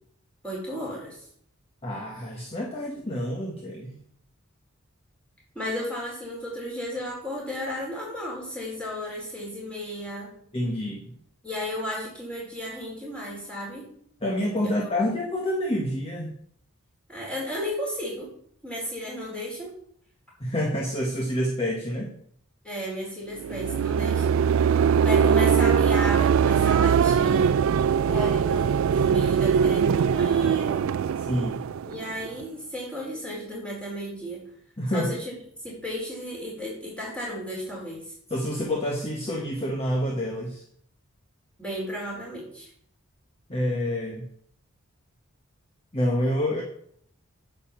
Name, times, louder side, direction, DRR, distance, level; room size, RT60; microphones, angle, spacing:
voice 1, 0.4-1.3 5.5-10.3 11.4-13.9 14.6-14.9 17.1-18.3 18.6-19.7 22.6-24.4 24.8-27.7 28.1-31.0 31.8-34.4 34.9-35.4 35.6-38.1 41.6-42.7, equal, 5° left, -5 dB, 4.5 m, -34 dB
voice 2, 1.8-4.0 10.5-11.1 14.2-16.3 20.4-22.1 31.3-31.6 34.8-35.1 38.3-40.6 43.5-44.2 45.9-46.6, equal, 25° left, -1 dB, 1.3 m, -28 dB
sound 1, 23.4-32.4, right 7 dB, 70° right, 0.3 m, -22 dB
9.3 x 5.5 x 7.5 m, 0.66 s
head